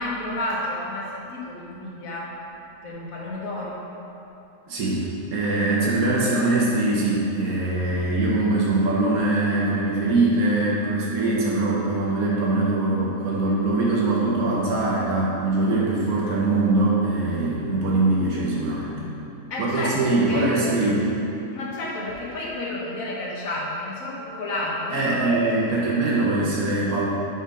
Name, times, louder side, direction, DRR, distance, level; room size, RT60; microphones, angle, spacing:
voice 1, 0.0-2.3 2.8-3.8 19.5-20.5 21.5-25.9, left 1 dB, 75° left, -4 dB, 1.5 m, -31 dB
voice 2, 4.7-19.0 19.6-21.1 24.9-27.1, right 2 dB, 90° right, -5 dB, 1.4 m, -22 dB
5.9 x 4.1 x 5.1 m, 2.8 s
omnidirectional pair, 1.5 m